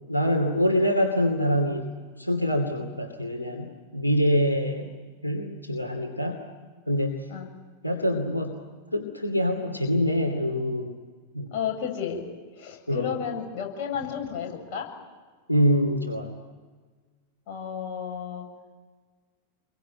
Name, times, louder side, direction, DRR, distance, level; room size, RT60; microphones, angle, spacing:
voice 1, 0.1-4.9 5.2-6.4 6.9-7.3 7.8-8.6 8.9-11.0 11.3-11.5 12.9-13.2 15.5-16.3, equal, 85° left, 3 dB, 2.6 m, -25 dB
voice 2, 11.5-12.2 12.6-14.9 17.5-18.5, left 8 dB, 45° left, 1 dB, 7.2 m, -32 dB
28.0 x 23.0 x 9.2 m, 1.5 s
figure-of-eight pair, 90°, 0 cm